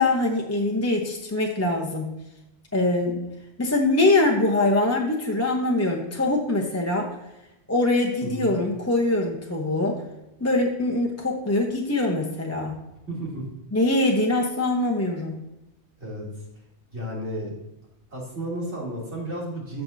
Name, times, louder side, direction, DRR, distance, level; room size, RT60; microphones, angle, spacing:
voice 1, 0.0-2.1 2.7-3.3 3.6-7.2 7.7-10.0 10.4-12.8 13.7-15.4, left 2 dB, 15° left, 0 dB, 0.7 m, -23 dB
voice 2, 8.2-8.5 13.1-13.4 16.0-16.3 16.9-17.5 18.1-19.8, right 1 dB, 70° right, -4 dB, 3.1 m, -32 dB
14.5 x 5.8 x 2.7 m, 0.93 s
omnidirectional pair, 1.2 m